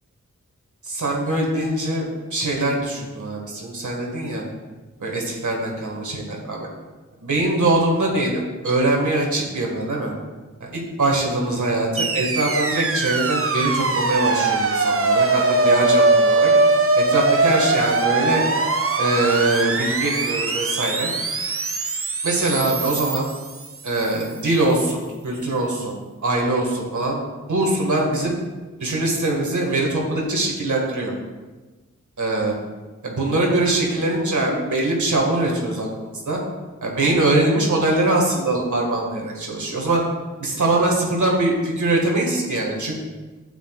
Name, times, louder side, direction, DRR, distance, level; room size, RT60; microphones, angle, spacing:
voice 1, 0.8-4.4 5.0-6.7 7.2-10.1 10.6-16.5 17.0-18.5 19.0-21.1 22.2-23.2 23.8-26.0 26.2-27.2 27.5-28.4 28.8-31.1 32.2-32.5 33.0-36.4 36.8-40.0 40.4-42.9, right 2 dB, 70° right, -1 dB, 1.8 m, -22 dB
sound 1, 12.0-24.2, right 3 dB, 45° right, 0.8 m, -21 dB
9.5 x 7.2 x 2.4 m, 1.2 s
cardioid pair, 45°, 32 cm